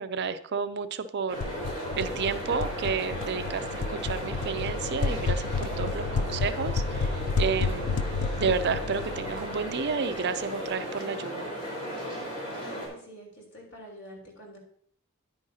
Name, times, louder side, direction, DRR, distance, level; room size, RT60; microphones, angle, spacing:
voice 1, 0.0-1.4 2.0-8.1 8.3-11.5, right 5 dB, 50° right, 11 dB, 0.5 m, -31 dB
sound 1, 1.3-12.9, equal, 40° left, 4.5 m, -36 dB
sound 2, 1.4-10.1, left 4 dB, 85° left, 0.5 m, -31 dB
voice 2, 12.5-14.6, equal, 60° left, -1 dB, 3.5 m, -47 dB
10.0 x 9.4 x 2.8 m, 0.65 s
head